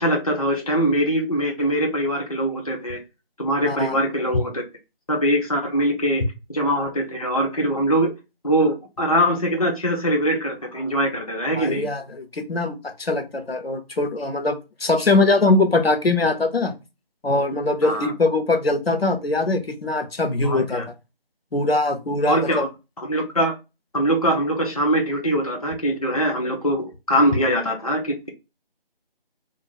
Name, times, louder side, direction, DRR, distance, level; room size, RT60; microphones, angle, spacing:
voice 1, 0.0-3.0 3.4-4.6 5.1-6.2 6.5-8.1 8.4-11.9 17.8-18.1 20.4-20.9 22.3-22.7 23.1-23.6 23.9-28.3, equal, 40° left, 0.5 m, -22 dB
voice 2, 11.5-16.7 17.2-20.8 21.5-22.6, left 2 dB, 85° left, 0.8 m, -22 dB
2.5 x 2.4 x 2.9 m
figure-of-eight pair, 165°, 29 cm